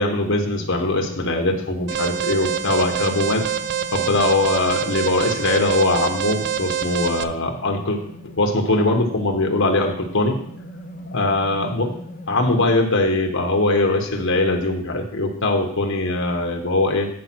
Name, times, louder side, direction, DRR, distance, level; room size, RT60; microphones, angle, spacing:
voice 1, 0.0-3.4 3.9-8.0 8.4-10.4 11.1-11.9 12.3-17.1, left 2 dB, 60° left, 3 dB, 1.0 m, -21 dB
sound 1, 0.6-12.7, left 2 dB, 40° left, 0.8 m, -39 dB
Alarm, 1.9-7.2, right 9 dB, 55° right, 0.5 m, -26 dB
9.6 x 4.9 x 6.0 m, 0.67 s
head